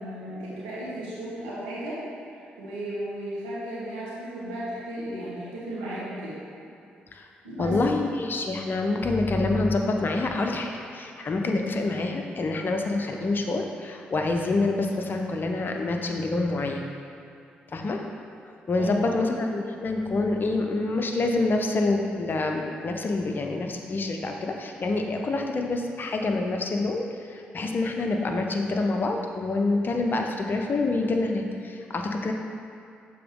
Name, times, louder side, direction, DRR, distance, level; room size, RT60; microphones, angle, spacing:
voice 1, 0.0-2.0 2.6-6.3 7.4-7.7 18.8-19.2, right 1 dB, 80° right, -8 dB, 1.4 m, -35 dB
voice 2, 7.6-16.9 17.7-18.0 18.4-32.3, left 2 dB, 45° left, 3 dB, 0.6 m, -27 dB
6.7 x 3.8 x 3.6 m, 2.5 s
hypercardioid pair, 40°, 5 cm